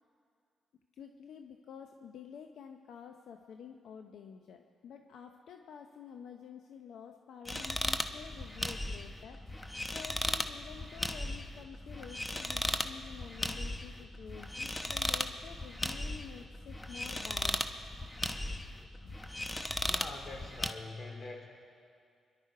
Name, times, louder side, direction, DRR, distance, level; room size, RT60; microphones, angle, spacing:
voice 1, 0.9-17.8 19.0-19.4, left 7 dB, 75° left, 5 dB, 0.7 m, -50 dB
sound 1, 7.5-20.7, left 1 dB, 15° left, 0.9 m, -37 dB
voice 2, 19.8-21.5, left 2 dB, 45° left, 2 dB, 3.1 m, -44 dB
25.5 x 11.5 x 4.7 m, 2.3 s
cardioid pair, 70°, 0 cm